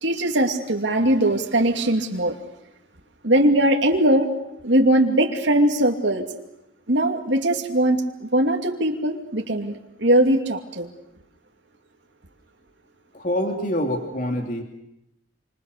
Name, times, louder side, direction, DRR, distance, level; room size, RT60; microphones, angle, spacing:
voice 1, 0.0-2.3 3.2-4.3 4.6-6.3 6.9-10.9, right 1 dB, 70° right, 2 dB, 2.7 m, -20 dB
voice 2, 13.1-14.6, left 1 dB, 45° left, 3 dB, 2.9 m, -25 dB
27.0 x 26.5 x 6.8 m, 0.86 s
head